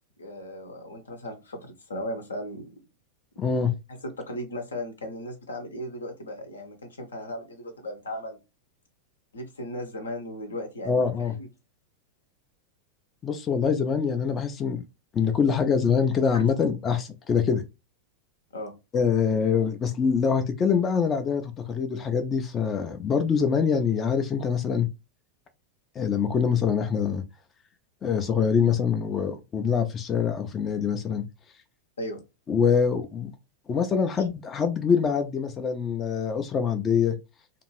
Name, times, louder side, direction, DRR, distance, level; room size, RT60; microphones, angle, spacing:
voice 1, 0.2-2.7 3.9-8.4 9.3-11.5 16.3-16.4 18.5-18.7 19.3-19.4 32.0-32.2, left 1 dB, 75° left, 0.8 m, -36 dB
voice 2, 3.4-3.7 10.9-11.4 13.2-14.8 15.1-17.6 18.9-24.9 26.0-27.2 28.0-31.2 32.5-33.3 33.7-37.2, left 6 dB, 25° left, 0.4 m, -24 dB
2.5 x 2.4 x 3.0 m
figure-of-eight pair, 90°, 0 cm